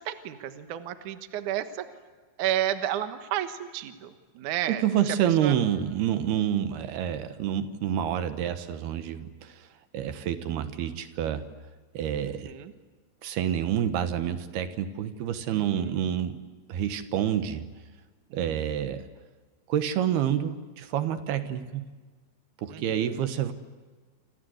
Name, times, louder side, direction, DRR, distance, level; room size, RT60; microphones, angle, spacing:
voice 1, 0.0-1.9 2.4-4.8 5.4-5.6 12.2-12.7 15.5-16.0 18.3-18.6 22.7-23.2, right 12 dB, 60° right, 8 dB, 2.4 m, -32 dB
voice 2, 4.7-9.7 9.9-11.5 11.9-12.5 13.2-16.4 16.7-17.7 18.3-19.0 19.7-21.9 22.6-23.5, right 10 dB, 75° right, 10 dB, 3.2 m, -28 dB
27.5 x 27.0 x 8.0 m, 1.4 s
omnidirectional pair, 4.6 m